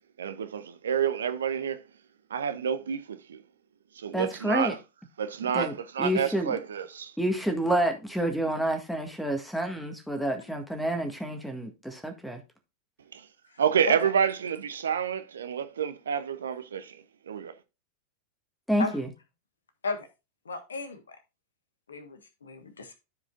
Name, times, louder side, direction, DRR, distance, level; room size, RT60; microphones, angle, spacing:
voice 1, 0.2-1.8 2.3-3.4 3.9-4.8 5.2-7.1 13.1-13.3 13.6-17.5, right 8 dB, 65° right, 0.7 m, -29 dB
voice 2, 4.1-4.8 5.5-6.5 7.2-12.4 18.7-19.1, right 1 dB, ahead, 1.7 m, -29 dB
voice 3, 10.1-10.4 13.9-14.1 18.8-19.0 19.8-20.1 20.4-21.2 21.9-23.0, left 4 dB, 70° left, 1.3 m, -35 dB
13.5 x 4.9 x 2.4 m
figure-of-eight pair, 90°, 0 cm